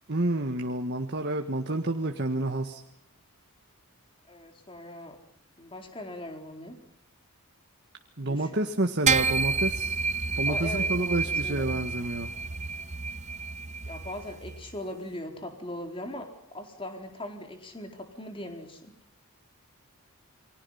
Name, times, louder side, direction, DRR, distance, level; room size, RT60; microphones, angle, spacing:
voice 1, 0.1-2.8 8.2-9.9 10.4-12.3, right 2 dB, 50° right, 4 dB, 1.7 m, -29 dB
voice 2, 4.3-5.2 5.6-6.8 8.2-8.7 10.5-11.2 11.4-11.8 13.8-16.3 16.5-18.9, left 1 dB, 25° left, 3 dB, 4.2 m, -40 dB
sound 1, 9.1-14.7, right 4 dB, 30° right, 1.0 m, -29 dB
29.5 x 24.0 x 5.8 m, 0.72 s
head